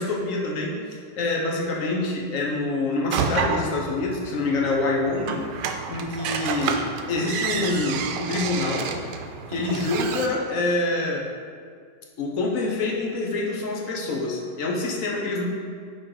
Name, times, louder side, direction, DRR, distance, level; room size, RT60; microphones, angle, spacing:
voice 1, 0.0-5.5 5.9-9.1 9.5-11.3 12.2-15.4, left 2 dB, 55° left, -2 dB, 1.1 m, -26 dB
sound 1, 3.1-10.3, right 6 dB, 80° right, 1.2 m, -30 dB
5.8 x 4.5 x 4.7 m, 2.1 s
omnidirectional pair, 1.9 m